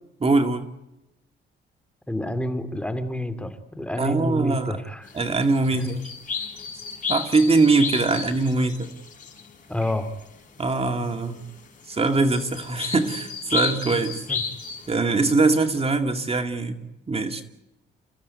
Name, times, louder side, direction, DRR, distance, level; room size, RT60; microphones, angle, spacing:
voice 1, 0.2-0.7 4.0-4.8 5.1-6.1 7.1-8.9 10.6-11.4 11.9-14.2 14.9-16.8 17.1-17.4, right 3 dB, 30° right, 6 dB, 2.3 m, -22 dB
voice 2, 2.1-5.1 5.7-5.9 8.1-8.2 9.7-10.1 14.3-14.4, left 1 dB, 5° left, 10 dB, 2.5 m, -29 dB
sound 1, 5.0-10.7 11.0-15.0, left 5 dB, 40° left, 6.6 m, -33 dB
29.0 x 15.5 x 9.5 m, 0.94 s
cardioid pair, 90°, 20 cm